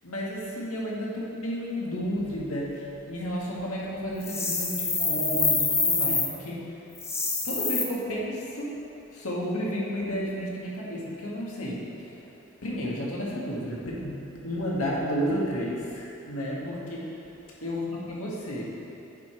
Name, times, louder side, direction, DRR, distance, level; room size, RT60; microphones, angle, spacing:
voice 1, 0.0-6.8 7.4-8.7 9.1-12.4 12.6-17.3 17.6-18.9, equal, 90° left, -4 dB, 1.5 m, -32 dB
sound 1, 4.2-6.3 7.0-7.8, left 4 dB, 15° left, 0.6 m, -26 dB
8.3 x 5.0 x 4.3 m, 2.8 s
head